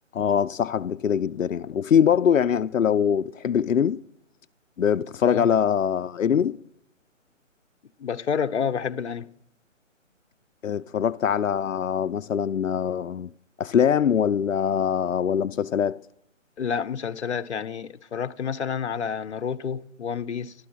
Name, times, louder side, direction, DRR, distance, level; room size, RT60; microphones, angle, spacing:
voice 1, 0.1-4.0 4.8-6.6 10.6-13.3 13.6-16.0, left 8 dB, 90° left, 0.5 m, -23 dB
voice 2, 8.0-9.3 16.6-20.5, left 7 dB, 60° left, 0.9 m, -29 dB
13.0 x 12.0 x 7.5 m
figure-of-eight pair, 150°, 39 cm